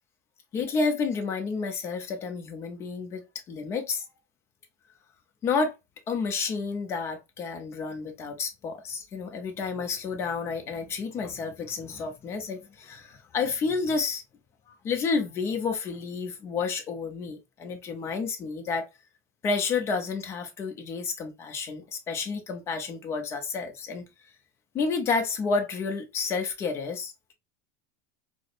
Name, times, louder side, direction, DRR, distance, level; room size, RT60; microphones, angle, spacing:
voice 1, 0.5-4.0 5.4-5.7 6.1-14.2 14.7-18.9 19.4-24.1 24.7-27.3, left 4 dB, 30° left, 0.7 m, -30 dB
4.6 x 2.1 x 2.5 m
supercardioid pair, 150°, 9 cm